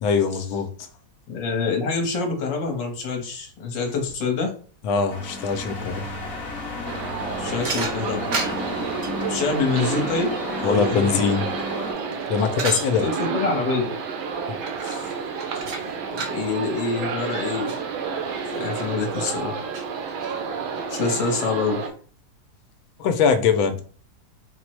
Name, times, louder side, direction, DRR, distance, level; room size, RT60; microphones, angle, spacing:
voice 1, 0.0-0.7 4.8-6.1 10.6-11.5 11.8-11.9 12.3-13.0 14.8-15.1 23.0-23.8, left 6 dB, 85° left, 8 dB, 1.4 m, -22 dB
voice 2, 1.3-4.5 7.4-8.3 9.3-10.3 10.6-11.2 13.0-13.9 16.1-17.7 18.4-19.7 20.9-21.8, left 4 dB, 70° left, 2 dB, 1.5 m, -26 dB
sound 1, 5.1-11.9, left 3 dB, 40° left, 1.0 m, -33 dB
sound 2, 6.9-21.9, right 6 dB, 80° right, 1.6 m, -30 dB
sound 3, 7.6-9.3 11.6-12.9 14.6-15.1 15.4-16.4 17.0-17.1 17.4-17.8 18.5-18.9 19.3-19.4 19.7-20.5, right 3 dB, 55° right, 0.8 m, -32 dB
4.4 x 2.0 x 4.5 m, 0.42 s
omnidirectional pair, 2.2 m